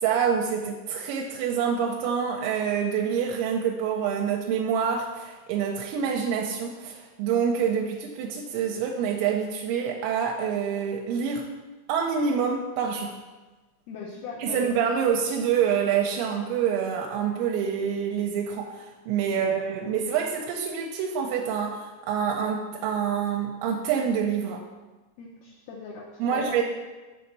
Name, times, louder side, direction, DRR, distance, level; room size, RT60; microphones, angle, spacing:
voice 1, 0.0-11.4 11.9-13.2 14.4-24.6 26.2-26.6, right 7 dB, 85° right, 0 dB, 2.9 m, -26 dB
voice 2, 13.9-14.7 19.2-19.9 25.2-26.6, left 4 dB, 80° left, -3 dB, 2.2 m, -39 dB
6.9 x 4.3 x 6.6 m, 1.2 s
omnidirectional pair, 5.2 m